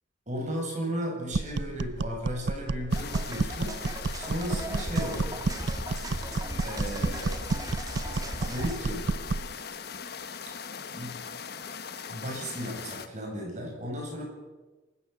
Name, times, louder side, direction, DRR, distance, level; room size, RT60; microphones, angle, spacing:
voice 1, 0.3-5.4 6.6-7.3 8.3-9.1 10.9-11.1 12.1-14.3, equal, 40° right, 0 dB, 7.9 m, -35 dB
sound 1, 1.3-9.5, right 3 dB, 65° right, 0.6 m, -31 dB
sound 2, 2.9-13.1, left 6 dB, 60° left, 1.3 m, -40 dB
sound 3, 3.0-8.8, right 1 dB, 20° right, 1.8 m, -39 dB
26.5 x 15.5 x 7.2 m, 1.2 s
head